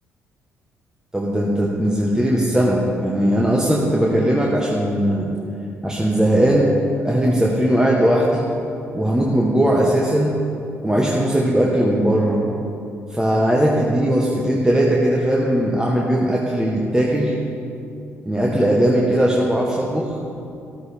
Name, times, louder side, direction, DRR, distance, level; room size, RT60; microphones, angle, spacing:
voice 1, 1.1-5.3 5.8-8.5 8.9-10.4 10.8-12.4 13.1-17.4 18.2-20.2, right 1 dB, 10° right, -3 dB, 1.4 m, -19 dB
13.5 x 12.5 x 3.6 m, 2.6 s
figure-of-eight pair, 45°, 7 cm